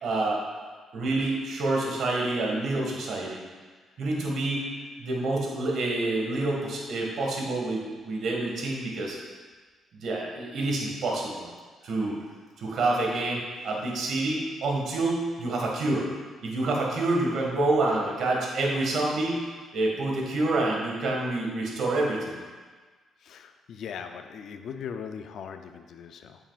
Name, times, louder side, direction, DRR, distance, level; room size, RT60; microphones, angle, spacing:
voice 1, 0.0-0.4 0.9-3.4 4.0-4.7 5.0-9.2 10.0-11.5 11.8-12.1 12.6-16.1 16.4-19.4 19.7-22.4, right 2 dB, 65° right, -1 dB, 1.8 m, -27 dB
voice 2, 23.3-26.4, left 7 dB, 70° left, 7 dB, 0.5 m, -39 dB
9.0 x 6.9 x 2.5 m, 1.4 s
cardioid pair, 90°, 0 cm